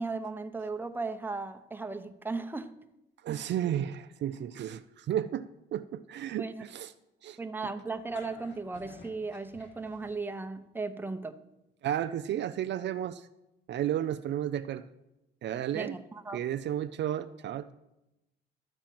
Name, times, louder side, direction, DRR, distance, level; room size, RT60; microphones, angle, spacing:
voice 1, 0.0-2.7 6.4-6.6 7.4-11.4 15.7-16.4, right 3 dB, 10° right, 7 dB, 0.8 m, -36 dB
voice 2, 3.2-6.9 7.2-7.4 11.8-13.2 13.7-14.9 15.4-16.0 16.3-17.7, right 11 dB, 65° right, 11 dB, 0.5 m, -33 dB
sound 1, 7.9-10.5, left 2 dB, 65° left, 2.0 m, -51 dB
12.5 x 4.4 x 7.7 m, 0.91 s
cardioid pair, 90°, 20 cm